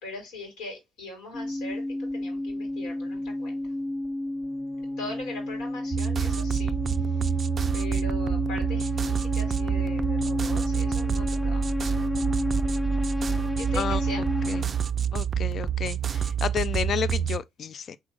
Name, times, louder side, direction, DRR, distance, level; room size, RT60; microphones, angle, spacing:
voice 1, 0.0-3.6 5.0-6.7 7.0-7.3 7.7-11.9 13.3-14.3, left 2 dB, 80° left, 2.9 m, -40 dB
sound 1, 1.3-14.6, left 1 dB, 10° left, 1.0 m, -31 dB
sound 2, 5.9-17.4, right 8 dB, 45° right, 0.3 m, -28 dB
voice 2, 15.1-18.0, left 8 dB, 55° left, 0.4 m, -31 dB
3.9 x 3.8 x 3.6 m
hypercardioid pair, 55°, 0 cm